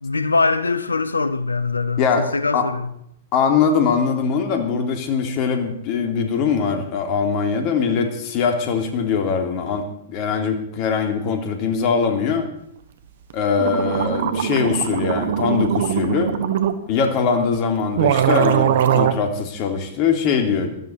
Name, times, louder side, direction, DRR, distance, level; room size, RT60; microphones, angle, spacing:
voice 1, 0.0-2.9, left 3 dB, 85° left, 1.1 m, -22 dB
voice 2, 3.3-12.5 13.3-16.3 16.9-20.7, left 6 dB, 45° left, 3.3 m, -22 dB
sound 1, 13.3-13.4 13.6-16.8 17.5-17.6 18.0-19.1, right 9 dB, 60° right, 1.4 m, -20 dB
18.0 x 13.5 x 4.8 m
figure-of-eight pair, 105°, 0 cm